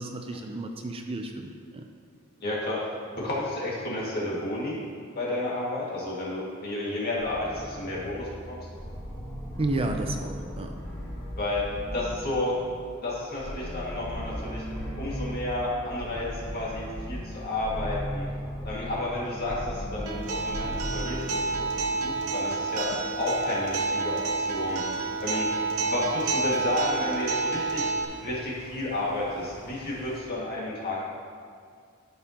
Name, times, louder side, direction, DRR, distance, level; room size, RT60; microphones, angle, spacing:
voice 1, 0.0-1.8 9.6-10.7, right 2 dB, 25° right, 4 dB, 0.4 m, -32 dB
voice 2, 2.4-4.8 5.2-8.6 11.3-12.6 13.0-14.6 15.0-18.3 18.6-22.9 23.2-24.8 25.2-25.5 25.8-31.1, left 2 dB, 45° left, -6 dB, 2.1 m, -31 dB
sound 1, 7.2-22.8, equal, 15° left, 1.4 m, -37 dB
Acoustic guitar, 20.1-28.0, right 3 dB, 80° right, 0.7 m, -29 dB
sound 2, 21.6-30.2, equal, 75° left, 2.2 m, -49 dB
12.5 x 5.4 x 2.9 m, 2.1 s
head